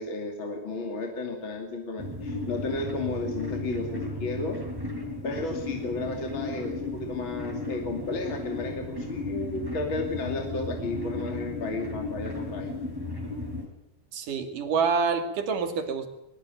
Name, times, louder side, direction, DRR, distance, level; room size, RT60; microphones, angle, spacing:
voice 1, 0.0-4.6 5.2-12.7, left 3 dB, 35° left, 3 dB, 2.8 m, -33 dB
sound 1, 2.0-13.7, left 2 dB, 5° right, 4.4 m, -35 dB
voice 2, 14.1-16.1, right 5 dB, 55° right, 7 dB, 3.8 m, -27 dB
22.5 x 21.5 x 9.2 m, 0.82 s
omnidirectional pair, 4.8 m